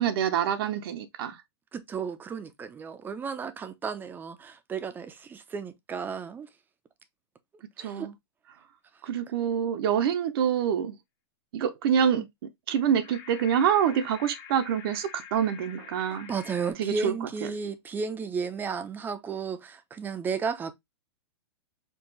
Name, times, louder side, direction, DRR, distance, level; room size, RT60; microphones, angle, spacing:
voice 1, 0.0-1.4 7.8-8.1 9.0-10.9 11.5-12.2 12.7-16.3 16.8-17.3, right 8 dB, 55° right, 0.7 m, -26 dB
voice 2, 1.7-6.5 7.8-8.1 12.2-12.3 16.1-20.7, right 5 dB, 15° right, 0.5 m, -33 dB
sound 1, 12.7-16.7, left 8 dB, 40° left, 1.5 m, -47 dB
4.7 x 2.4 x 3.9 m
hypercardioid pair, 140°, 14 cm